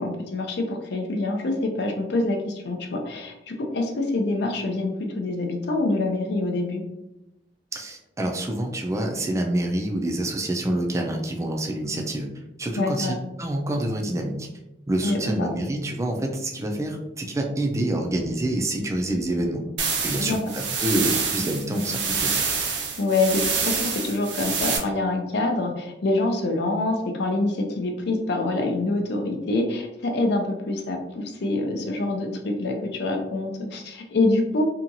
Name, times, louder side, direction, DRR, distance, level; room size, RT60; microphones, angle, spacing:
voice 1, 0.0-6.8 12.8-13.2 15.0-15.5 20.2-20.4 23.0-34.7, left 2 dB, 65° left, 3 dB, 0.5 m, -26 dB
voice 2, 7.7-12.3 12.6-14.5 14.9-19.6 20.0-22.3, right 1 dB, 15° right, 2 dB, 0.4 m, -27 dB
sound 1, 19.8-24.8, right 5 dB, 75° right, 0.5 m, -26 dB
2.8 x 2.3 x 2.6 m, 0.92 s
head